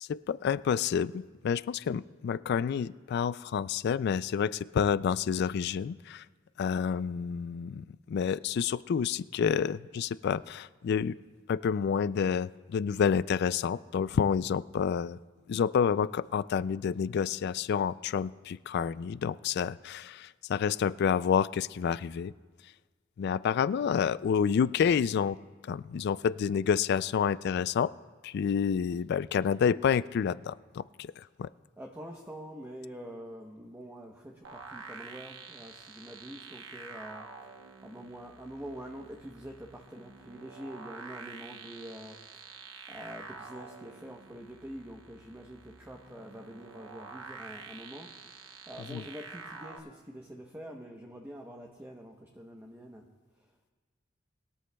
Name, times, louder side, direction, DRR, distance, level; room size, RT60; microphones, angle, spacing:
voice 1, 0.0-6.2 6.6-11.1 11.5-15.2 15.5-22.3 23.2-25.4 25.7-27.9 28.2-31.5 48.9-49.0, left 7 dB, 55° left, 17 dB, 0.3 m, -29 dB
voice 2, 31.8-37.3 37.8-53.0, equal, 10° right, 0 dB, 0.9 m, -46 dB
sound 1, 34.4-49.8, right 4 dB, 80° right, 1.0 m, -48 dB
21.0 x 13.0 x 2.3 m, 1.5 s
head